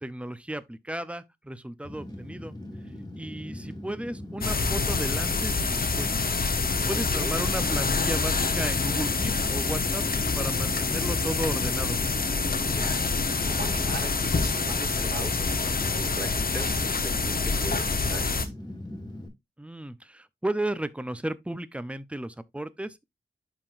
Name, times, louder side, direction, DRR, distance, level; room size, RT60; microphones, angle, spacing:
voice 1, 0.0-2.6 3.2-6.2 6.9-10.0 10.4-12.0 19.6-23.0, right 1 dB, 5° right, 0.6 m, -34 dB
Fire, 1.8-19.3, left 1 dB, 20° left, 1.7 m, -41 dB
sound 1, 4.4-18.5, left 4 dB, 55° left, 0.9 m, -26 dB
voice 2, 6.8-7.3 12.7-18.5, right 2 dB, 55° right, 4.3 m, -40 dB
11.5 x 3.8 x 2.5 m
wide cardioid pair, 70°, 19 cm